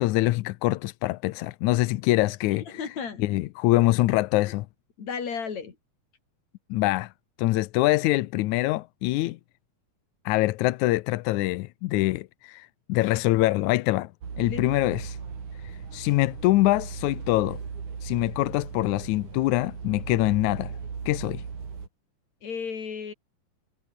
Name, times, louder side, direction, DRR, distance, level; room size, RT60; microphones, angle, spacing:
voice 1, 0.0-2.6 3.2-4.7 6.7-7.1 7.4-9.4 10.3-14.1 14.4-15.2 15.9-17.6 18.0-20.7 21.1-21.4, left 18 dB, 80° left, 1.9 m, -24 dB
voice 2, 2.7-3.2 5.0-5.8 14.4-14.6 22.4-23.1, left 6 dB, 55° left, 4.7 m, -33 dB
sound 1, 14.2-21.9, right 6 dB, 70° right, 5.5 m, -37 dB
omnidirectional pair, 3.8 m